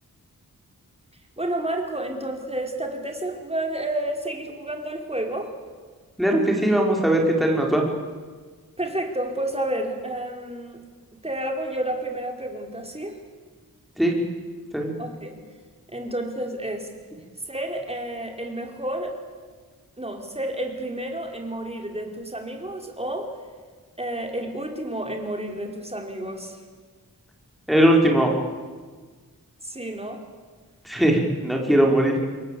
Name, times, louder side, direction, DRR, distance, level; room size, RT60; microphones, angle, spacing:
voice 1, 1.4-5.5 8.8-10.8 11.1-13.2 15.0-15.4 15.9-16.9 17.5-19.2 20.0-23.3 24.0-26.6 29.6-30.2, right 1 dB, 15° right, 3 dB, 4.5 m, -30 dB
voice 2, 6.2-7.8 14.0-14.1 14.7-15.0 27.7-28.3 30.9-32.2, right 1 dB, ahead, 0 dB, 5.2 m, -19 dB
29.0 x 22.5 x 8.5 m, 1.5 s
wide cardioid pair, 90°, 36 cm